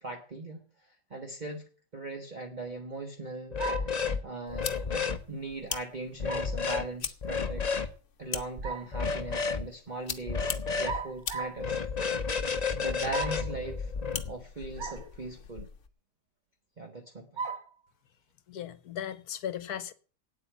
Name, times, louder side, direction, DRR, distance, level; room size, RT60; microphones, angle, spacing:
voice 1, 0.0-0.6 1.1-1.6 1.9-3.6 3.9-4.0 4.2-7.7 8.2-11.8 12.8-13.9 14.3-15.7 16.8-17.4, right 2 dB, 30° right, 1.5 m, -39 dB
sound 1, 3.5-4.2 4.5-5.2 6.2-6.8 7.2-7.9 8.9-9.6 10.3-11.0 11.6-14.3, left 5 dB, 30° left, 0.8 m, -31 dB
sound 2, 3.6-4.0 6.3-6.6 8.4-9.0 10.8-11.6 13.1-13.5 14.8-15.0 15.6-15.7 17.4-17.7, right 5 dB, 45° right, 0.7 m, -36 dB
sound 3, 4.5-15.9, left 7 dB, 50° left, 1.3 m, -43 dB
voice 2, 18.5-19.9, left 10 dB, 70° left, 1.4 m, -37 dB
9.0 x 8.2 x 9.3 m
omnidirectional pair, 1.8 m